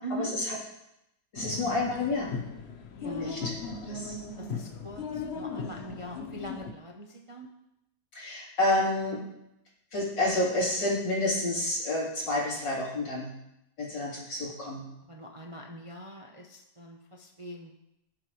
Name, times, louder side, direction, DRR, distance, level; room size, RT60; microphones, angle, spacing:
voice 1, 0.2-0.6 1.3-2.3 3.0-3.6 3.9-4.2 8.2-9.2 9.9-13.3 13.8-14.8, left 2 dB, 90° left, -6 dB, 4.0 m, -29 dB
sound 1, 1.4-6.7, left 4 dB, 50° left, 0.8 m, -37 dB
voice 2, 2.9-3.3 3.7-3.8 4.4-7.5 13.9-14.2 15.1-17.7, right 1 dB, 30° right, 1 dB, 0.6 m, -42 dB
18.5 x 7.5 x 3.1 m, 0.84 s
omnidirectional pair, 1.9 m